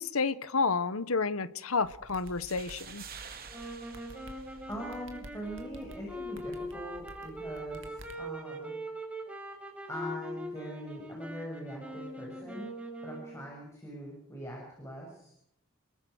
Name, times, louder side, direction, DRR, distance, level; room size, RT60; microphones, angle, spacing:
voice 1, 0.0-3.0, left 4 dB, 85° left, 1.2 m, -30 dB
sound 1, 1.8-8.1, right 1 dB, 65° right, 2.5 m, -52 dB
sound 2, 2.1-5.2, right 7 dB, 45° right, 2.8 m, -49 dB
sound 3, 3.5-13.5, equal, 5° right, 5.7 m, -42 dB
voice 2, 4.7-8.7 9.9-12.7 13.0-15.3, equal, 15° left, 6.7 m, -42 dB
29.0 x 20.5 x 6.4 m
head